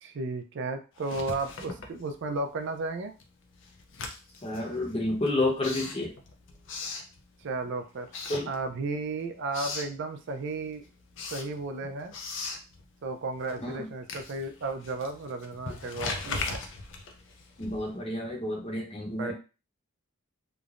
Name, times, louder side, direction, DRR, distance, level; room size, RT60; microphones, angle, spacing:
voice 1, 0.0-3.1 7.4-8.1 8.5-10.8 11.3-12.1 13.0-16.6 19.2-19.3, right 3 dB, 55° right, 6 dB, 0.4 m, -34 dB
Writing, 1.0-2.6 2.9-7.7 8.0-9.0 9.3-10.0 10.4-18.1, left 3 dB, 60° left, 0.5 m, -39 dB
voice 2, 4.4-6.1 8.3-8.5 13.6-13.9 17.6-19.3, left 2 dB, 25° left, -1 dB, 0.7 m, -30 dB
3.1 x 2.0 x 2.4 m, 0.32 s
head